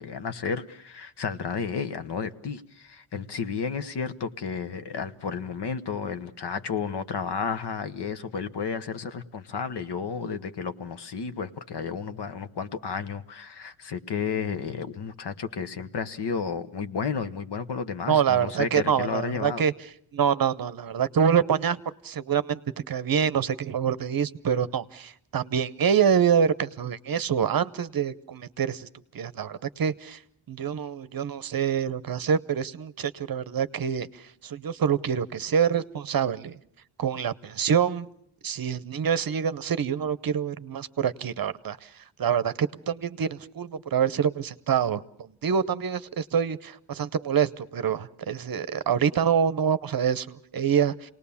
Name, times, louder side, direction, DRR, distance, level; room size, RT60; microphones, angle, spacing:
voice 1, 0.0-19.6, left 6 dB, 55° left, 1.2 m, -32 dB
voice 2, 18.1-19.7 20.1-21.8 22.0-22.6 22.9-28.9 29.1-30.2 30.5-36.6 37.0-38.1 38.4-41.9 42.2-51.1, right 7 dB, 45° right, 0.8 m, -26 dB
28.0 x 19.0 x 7.1 m
cardioid pair, 110°, 47 cm